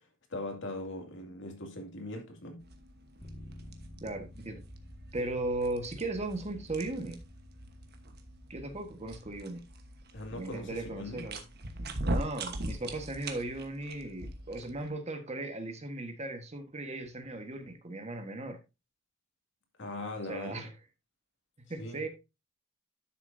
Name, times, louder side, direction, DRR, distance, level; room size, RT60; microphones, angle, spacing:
voice 1, 0.3-2.6 10.1-11.2 19.8-20.7 21.8-22.1, left 2 dB, 65° left, 2.3 m, -40 dB
sound 1, 2.6-14.9, right 1 dB, 50° right, 1.2 m, -41 dB
Bass guitar, 3.2-9.5, equal, 30° left, 1.6 m, -52 dB
voice 2, 4.0-4.6 5.1-7.2 8.5-9.6 10.3-11.4 12.1-18.6 20.3-20.7 21.7-22.1, right 2 dB, 30° right, 1.4 m, -37 dB
11.5 x 6.6 x 2.7 m
head